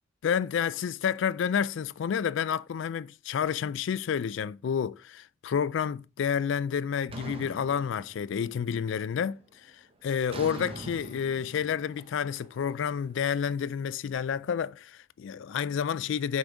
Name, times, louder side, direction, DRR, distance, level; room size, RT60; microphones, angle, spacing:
voice 1, 0.2-9.4 10.0-16.4, left 7 dB, 65° left, 0.3 m, -29 dB
sound 1, 7.1-8.6 9.0-9.4 10.3-13.4, right 2 dB, 25° right, 0.6 m, -43 dB
6.2 x 5.0 x 3.4 m
head